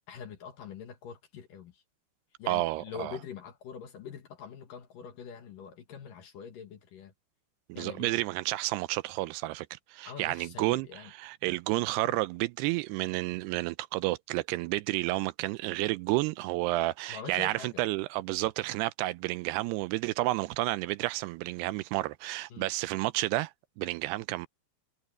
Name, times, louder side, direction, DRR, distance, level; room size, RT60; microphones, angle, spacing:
voice 1, 0.0-1.8 2.4-7.1 7.7-8.2 10.0-11.1 12.1-12.2 17.1-17.8 22.5-22.7, left 7 dB, 60° left, 2.7 m, -44 dB
voice 2, 2.5-3.2 7.7-10.9 11.2-24.5, right 18 dB, 85° right, 2.4 m, -31 dB
omnidirectional pair, 5.0 m